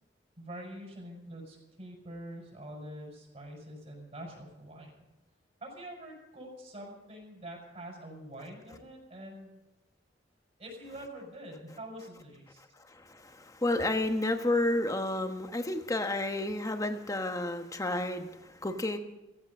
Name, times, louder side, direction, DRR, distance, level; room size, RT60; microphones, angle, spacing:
voice 1, 0.4-5.1 5.6-9.6 10.6-12.6, right 1 dB, 40° right, -2 dB, 6.1 m, -45 dB
voice 2, 12.8-19.0, left 2 dB, 20° left, 6 dB, 1.2 m, -31 dB
16.5 x 15.0 x 5.5 m, 1.0 s
head